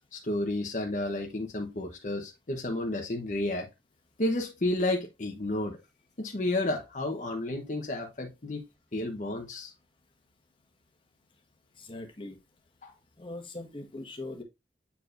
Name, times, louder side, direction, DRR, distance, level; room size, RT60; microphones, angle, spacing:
voice 1, 0.1-3.7 4.2-5.8 6.2-8.6 8.9-9.7 12.8-12.9, left 1 dB, 45° left, 1.0 m, -31 dB
voice 2, 11.8-12.4 13.2-14.4, left 2 dB, 30° left, 1.4 m, -40 dB
8.2 x 4.6 x 2.5 m
head